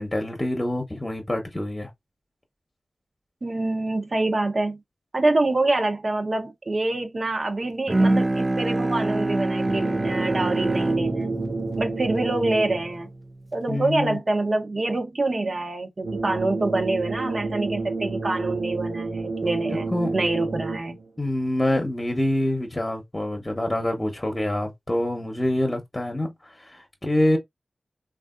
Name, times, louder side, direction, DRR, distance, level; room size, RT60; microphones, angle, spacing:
voice 1, 0.0-1.9 13.7-14.2 19.7-20.1 21.2-27.4, left 1 dB, 20° left, 0.9 m, -26 dB
voice 2, 3.4-4.8 5.1-11.3 11.8-13.1 13.5-19.9 20.1-21.0, right 2 dB, 55° right, 0.7 m, -26 dB
Bowed string instrument, 7.9-13.3, right 2 dB, 35° right, 0.3 m, -26 dB
sound 1, 9.6-13.1 16.0-21.1, right 3 dB, 90° right, 0.9 m, -30 dB
3.4 x 2.4 x 2.4 m
cardioid pair, 45°, 0 cm